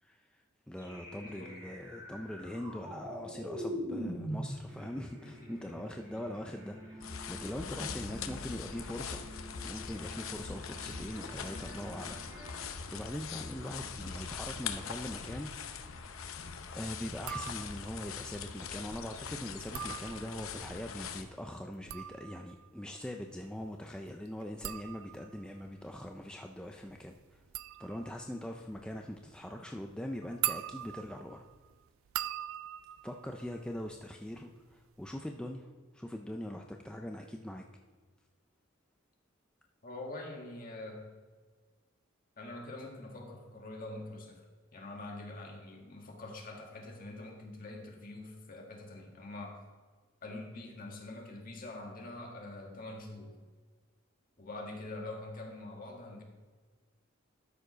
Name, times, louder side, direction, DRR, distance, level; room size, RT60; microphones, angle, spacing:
voice 1, 0.0-9.3 9.6-12.5 12.9-15.9 16.7-27.4 27.8-31.5 33.0-37.6, left 1 dB, 5° left, 3 dB, 0.4 m, -42 dB
sound 1, 0.8-12.7, equal, 15° right, 2.0 m, -44 dB
voice 2, 1.1-1.5 5.4-5.5 39.8-41.1 42.4-44.4 44.7-49.6 50.2-53.4 54.4-56.2, left 2 dB, 40° left, 0 dB, 1.6 m, -45 dB
sound 2, 7.0-21.2, left 6 dB, 70° left, 0.7 m, -42 dB
sound 3, 17.2-18.0 19.5-20.6 21.6-34.3 34.6-35.1, right 13 dB, 65° right, 0.3 m, -42 dB
12.5 x 4.7 x 5.0 m, 1.4 s
head